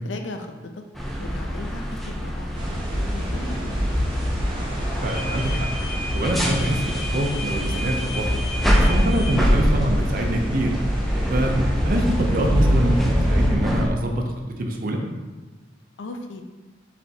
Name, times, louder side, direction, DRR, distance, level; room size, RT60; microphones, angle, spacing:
voice 1, 0.0-0.8 1.2-2.5 2.9-3.9 16.0-16.4, left 2 dB, 80° left, 5 dB, 0.5 m, -37 dB
sound 1, 0.9-13.9, equal, ahead, 0.4 m, -25 dB
sound 2, 2.6-13.5, equal, 25° right, 0.8 m, -26 dB
voice 2, 5.0-5.7 6.1-8.3 8.8-10.7 11.3-14.3 14.6-15.0, right 1 dB, 50° right, 2 dB, 0.5 m, -25 dB
5.3 x 3.4 x 2.8 m, 1.2 s
head